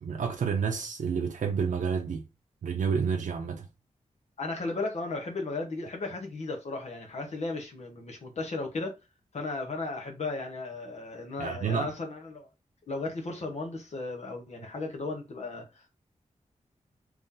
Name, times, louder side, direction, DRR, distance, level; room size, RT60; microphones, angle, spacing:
voice 1, 0.0-2.2 2.6-3.7 11.4-11.9, right 6 dB, 85° right, 0.5 m, -29 dB
voice 2, 4.4-9.0 9.3-12.5 12.9-15.9, left 3 dB, 60° left, 0.9 m, -35 dB
3.1 x 2.7 x 3.6 m
wide cardioid pair, 125°, 13 cm